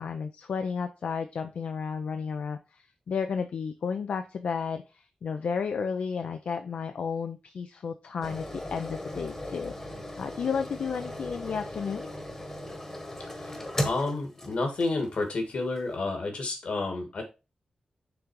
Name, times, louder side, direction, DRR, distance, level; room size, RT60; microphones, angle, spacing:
voice 1, 0.0-9.7 10.2-12.1, left 6 dB, 80° left, 7 dB, 0.5 m, -32 dB
sound 1, 8.2-15.2 15.8-15.9, left 1 dB, 15° left, 1.1 m, -37 dB
voice 2, 13.4-17.2, left 3 dB, 60° left, 4 dB, 1.8 m, -30 dB
6.1 x 3.7 x 4.6 m, 0.29 s
wide cardioid pair, 175°, 2 cm